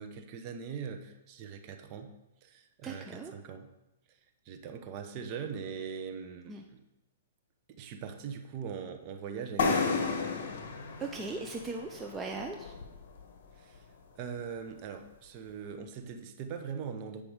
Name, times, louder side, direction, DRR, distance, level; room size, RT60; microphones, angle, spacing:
voice 1, 0.0-2.1 2.4-3.7 4.4-6.8 7.8-10.1 13.6-13.8 14.2-17.2, right 6 dB, 35° right, 5 dB, 1.0 m, -41 dB
voice 2, 2.8-3.3 6.5-6.6 11.0-12.7, right 3 dB, 15° right, 2 dB, 0.6 m, -38 dB
sound 1, 9.6-13.2, left 4 dB, 60° left, 1.4 m, -33 dB
8.7 x 5.2 x 4.9 m, 0.96 s
hypercardioid pair, 140°, 0 cm